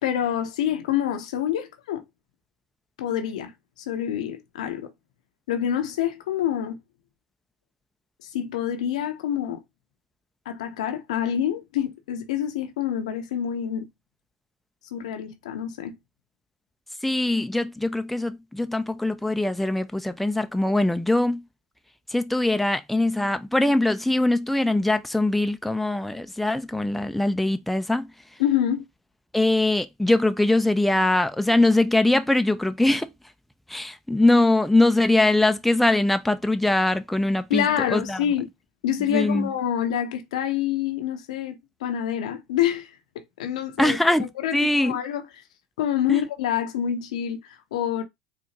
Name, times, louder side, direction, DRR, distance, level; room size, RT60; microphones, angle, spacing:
voice 1, 0.0-2.0 3.0-3.5 3.8-4.9 5.5-6.8 8.2-9.6 10.5-13.9 14.9-16.0 28.4-28.8 37.5-38.5 38.8-42.9 43.1-44.0 44.4-45.3 45.8-48.0, left 10 dB, 80° left, 0.6 m, -27 dB
voice 2, 17.0-21.4 22.1-28.1 29.3-33.1 33.7-38.2 39.1-39.5 43.8-45.0 46.1-46.2, left 2 dB, 5° left, 0.4 m, -22 dB
4.1 x 2.4 x 2.8 m
hypercardioid pair, 80°, 4 cm